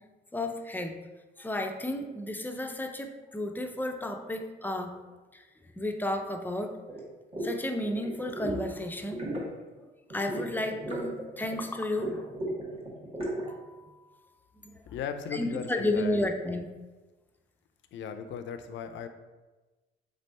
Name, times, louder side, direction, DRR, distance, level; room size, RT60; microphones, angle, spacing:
voice 1, 0.3-1.0 1.4-5.0 5.3-5.4 5.8-6.7 7.4-9.3 9.8-9.9 10.1-12.2 13.5-14.0 14.7-14.8 15.3-16.7, left 1 dB, 10° left, 5 dB, 0.4 m, -32 dB
sound 1, 6.9-7.0 7.3-7.5 7.8-8.7 9.0-9.5 10.1-11.7 12.0-13.5, right 1 dB, 30° right, 1.3 m, -35 dB
voice 2, 14.9-16.2 17.9-19.1, left 7 dB, 70° left, 9 dB, 0.5 m, -37 dB
3.6 x 3.3 x 4.1 m, 1.2 s
cardioid pair, 90°, 20 cm